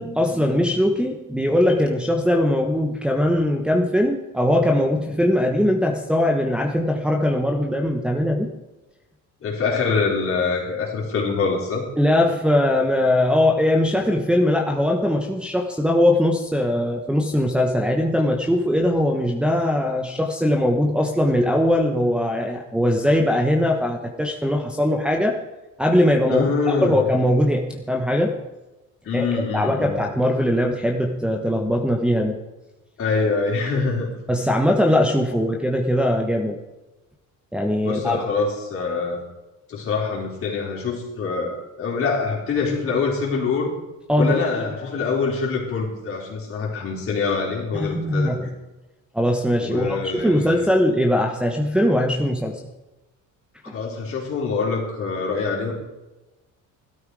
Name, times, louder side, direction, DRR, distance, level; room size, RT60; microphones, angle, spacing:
voice 1, 0.0-8.5 12.0-25.4 25.8-28.3 29.1-32.4 34.3-36.6 37.5-38.2 44.1-44.3 47.7-48.5 49.1-52.6 53.7-53.8, left 1 dB, 5° right, -1 dB, 1.1 m, -21 dB
voice 2, 9.4-11.9 26.3-27.1 29.0-30.0 33.0-34.1 37.8-39.2 39.7-43.7 44.2-48.5 49.6-50.7 53.6-55.7, left 4 dB, 45° left, -1 dB, 4.2 m, -25 dB
16.0 x 13.0 x 4.8 m, 1.1 s
cardioid pair, 160°, 32 cm